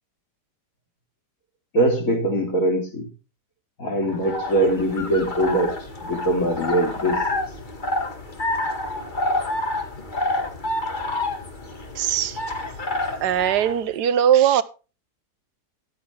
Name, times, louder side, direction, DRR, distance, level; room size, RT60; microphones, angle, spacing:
voice 1, 1.7-3.1 3.8-5.8 6.0-7.5, right 1 dB, 50° left, 3.5 m, -22 dB
sound 1, 4.0-13.8, left 2 dB, 30° left, 1.8 m, -28 dB
voice 2, 11.9-12.4 13.2-14.6, right 10 dB, 80° right, 1.3 m, -20 dB
13.5 x 10.0 x 3.3 m
omnidirectional pair, 1.8 m